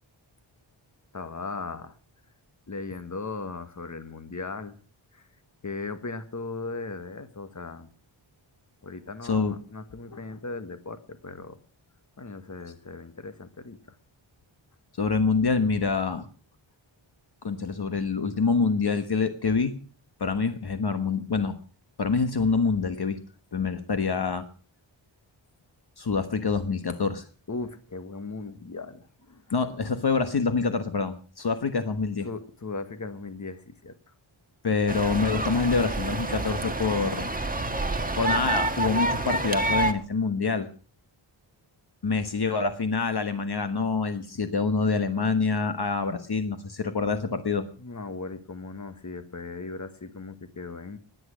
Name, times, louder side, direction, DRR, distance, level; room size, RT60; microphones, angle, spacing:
voice 1, 1.1-2.0 2.7-4.8 5.1-5.3 5.6-7.9 8.8-11.6 12.2-14.0 26.9-27.0 27.5-29.7 32.2-34.0 47.8-51.0, left 3 dB, 35° left, 10 dB, 1.6 m, -38 dB
voice 2, 9.2-9.5 15.0-16.3 17.4-19.8 20.2-21.6 22.0-23.2 23.5-24.5 26.0-27.2 29.5-32.3 34.6-37.3 38.2-40.7 42.0-47.7, left 4 dB, 55° left, 9 dB, 1.4 m, -26 dB
sound 1, 34.9-39.9, right 2 dB, 15° right, 1.7 m, -28 dB
17.0 x 11.0 x 6.3 m, 0.41 s
wide cardioid pair, 105°, 48 cm